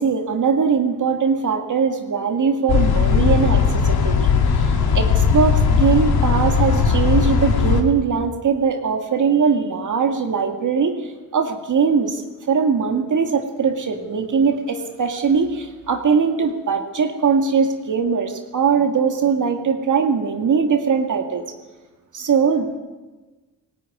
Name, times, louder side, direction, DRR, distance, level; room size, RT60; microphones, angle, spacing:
voice 1, 0.0-12.2 12.5-21.4 22.1-22.8, right 5 dB, 55° right, 4 dB, 2.1 m, -21 dB
sound 1, 2.7-7.8, left 6 dB, 90° left, 2.8 m, -18 dB
18.5 x 17.5 x 9.6 m, 1.2 s
cardioid pair, 95°, 36 cm